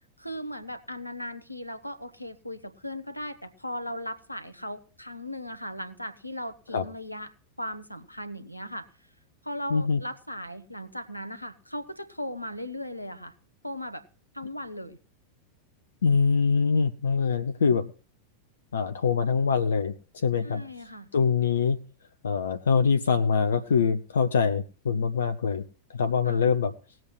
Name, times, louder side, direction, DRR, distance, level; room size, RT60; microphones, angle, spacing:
voice 1, 0.2-7.3 7.6-8.9 9.4-13.3 13.6-14.0 14.3-15.0 20.4-21.1 26.2-26.4, equal, 90° left, 10 dB, 1.2 m, -37 dB
voice 2, 9.7-10.0 16.0-17.9 18.7-20.6 21.1-21.8 22.2-25.6 25.9-26.7, left 5 dB, 65° left, 9 dB, 0.8 m, -24 dB
18.5 x 7.8 x 4.4 m, 0.38 s
figure-of-eight pair, 90°, 0 cm